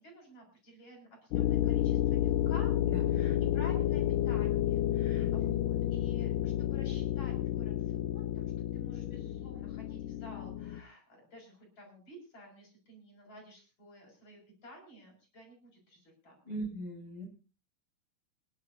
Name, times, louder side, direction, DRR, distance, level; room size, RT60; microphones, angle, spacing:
voice 1, 0.0-2.7 3.1-16.4, equal, 45° left, 0 dB, 7.5 m, -52 dB
sound 1, 1.3-10.8, left 12 dB, 80° left, 2.4 m, -30 dB
voice 2, 5.2-5.5 16.4-17.3, right 1 dB, 40° right, 1 dB, 7.1 m, -40 dB
28.5 x 11.5 x 2.7 m, 0.35 s
omnidirectional pair, 3.8 m